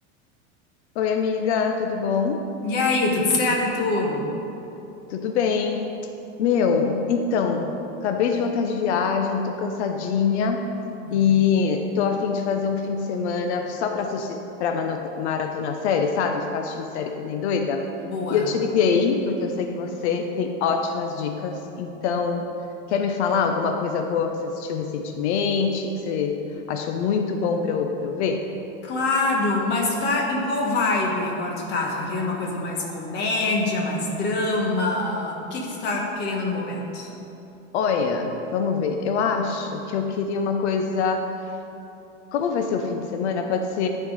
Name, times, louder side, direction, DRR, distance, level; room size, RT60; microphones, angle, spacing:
voice 1, 0.9-2.5 5.1-5.9 6.4-7.8 8.0-10.7 11.1-17.9 18.3-22.5 22.9-26.4 26.7-28.5 37.7-41.6 42.3-43.9, left 5 dB, 80° left, 4 dB, 0.8 m, -24 dB
voice 2, 2.6-4.2 11.0-11.2 18.0-18.5 28.8-37.1, left 2 dB, 30° left, -1 dB, 1.4 m, -25 dB
12.5 x 4.6 x 5.3 m, 3.0 s
supercardioid pair, 165°, 33 cm